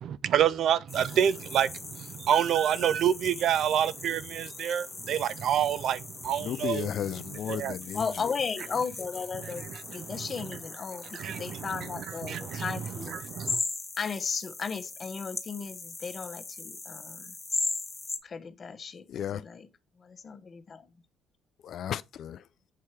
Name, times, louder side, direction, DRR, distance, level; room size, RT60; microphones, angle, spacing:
voice 1, 0.0-6.9 7.5-7.7 9.4-9.5 10.0-10.1 11.1-11.7 12.2-12.7 13.1-13.6, right 9 dB, 70° right, 0.4 m, -27 dB
sound 1, 0.9-18.2, left 3 dB, 20° left, 1.3 m, -39 dB
voice 2, 6.4-8.1 19.1-19.4 21.6-22.4, left 9 dB, 65° left, 0.3 m, -34 dB
voice 3, 7.9-13.2 14.0-17.3 18.2-19.7 20.0-21.0, left 5 dB, 45° left, 1.0 m, -35 dB
7.6 x 2.8 x 4.7 m
supercardioid pair, 65°, 0 cm